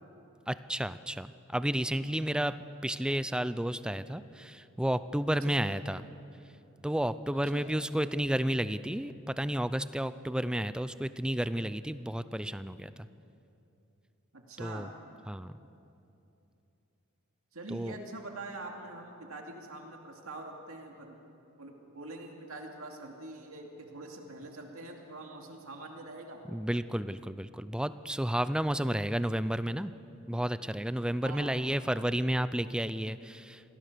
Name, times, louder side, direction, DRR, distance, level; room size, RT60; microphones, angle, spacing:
voice 1, 0.5-1.3 1.5-6.0 6.8-13.1 14.6-14.9 15.3-15.5 17.7-17.9 26.5-29.9 30.3-33.6, right 1 dB, 5° right, 14 dB, 0.4 m, -32 dB
voice 2, 14.3-14.9 17.5-26.4 28.7-28.9 31.2-31.8, right 2 dB, 70° right, 1 dB, 2.5 m, -45 dB
26.5 x 17.5 x 6.8 m, 2.8 s
head